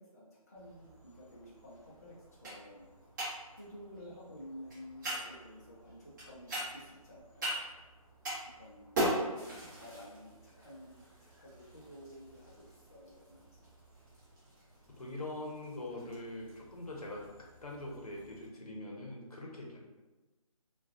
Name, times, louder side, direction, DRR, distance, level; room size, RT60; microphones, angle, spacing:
voice 1, 0.0-2.9 3.5-7.5 8.6-9.1 9.7-13.6, equal, 25° left, -7 dB, 0.4 m, -52 dB
sound 1, 0.6-18.4, right 1 dB, 30° right, 1.1 m, -42 dB
voice 2, 14.9-19.8, left 1 dB, 75° left, -2 dB, 0.7 m, -43 dB
2.4 x 2.2 x 2.4 m, 1.2 s
figure-of-eight pair, 155°, 19 cm